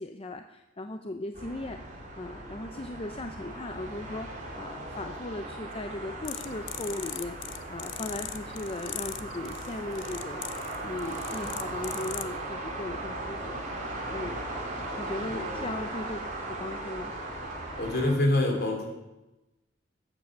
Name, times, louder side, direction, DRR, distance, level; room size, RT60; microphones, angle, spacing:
voice 1, 0.0-1.8 2.2-7.4 7.7-10.4 10.8-13.6 14.1-14.4 15.0-16.2 16.5-17.1, left 2 dB, 30° left, 7 dB, 0.6 m, -37 dB
sound 1, 1.3-18.1, right 2 dB, 40° right, 3.0 m, -38 dB
sound 2, 6.2-12.4, left 11 dB, 75° left, 0.7 m, -41 dB
voice 2, 15.3-15.6 17.8-18.9, left 1 dB, 55° left, 2 dB, 3.5 m, -26 dB
14.0 x 8.3 x 6.6 m, 1.0 s
head